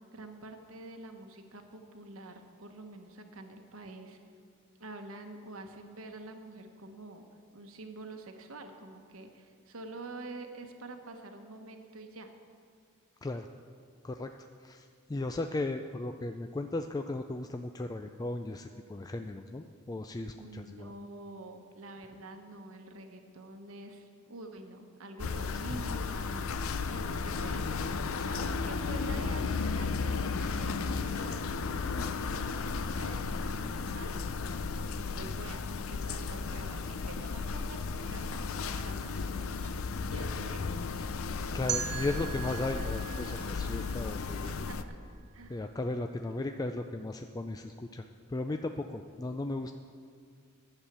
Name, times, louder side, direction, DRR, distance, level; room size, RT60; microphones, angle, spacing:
voice 1, 0.1-4.2 4.8-7.2 7.5-12.3 20.4-34.2 34.8-39.7 40.1-40.6 44.4-45.0 45.3-45.6, right 2 dB, 80° right, 5 dB, 1.1 m, -47 dB
voice 2, 13.2-13.5 14.0-14.3 14.6-20.9 25.5-25.6 41.5-44.7 45.5-49.7, left 2 dB, 20° left, 6 dB, 0.3 m, -36 dB
sound 1, 25.2-44.8, left 4 dB, 80° left, 0.5 m, -34 dB
sound 2, 41.7-44.6, right 10 dB, 55° right, 0.5 m, -39 dB
11.5 x 7.2 x 8.2 m, 2.2 s
head